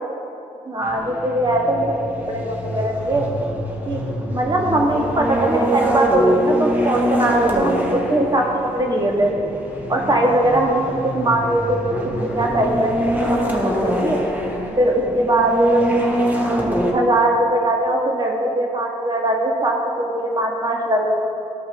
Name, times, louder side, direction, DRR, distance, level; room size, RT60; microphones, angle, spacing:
voice 1, 0.6-1.9 2.3-3.3 3.8-4.0 4.3-8.5 8.7-9.3 9.9-11.8 12.2-12.9 13.2-14.2 14.8-16.5 16.9-21.1, right 1 dB, 30° right, 0 dB, 1.5 m, -20 dB
sound 1, 0.8-16.9, equal, 10° right, 1.5 m, -24 dB
13.5 x 5.4 x 3.4 m, 2.8 s
cardioid pair, 65°, 14 cm